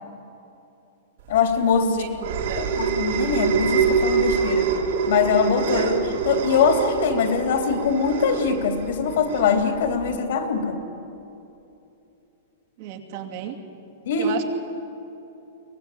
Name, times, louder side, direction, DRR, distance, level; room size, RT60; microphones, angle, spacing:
voice 1, 1.3-2.0 2.7-4.7 5.1-10.8 14.0-14.4, left 6 dB, 70° left, 5 dB, 3.2 m, -22 dB
sound 1, 1.3-10.2, right 5 dB, 70° right, 3.6 m, -25 dB
voice 2, 1.8-2.7 12.8-13.6 14.2-14.4, right 9 dB, 50° right, 2 dB, 2.6 m, -34 dB
23.5 x 18.5 x 8.7 m, 2.8 s
hypercardioid pair, 150°, 0 cm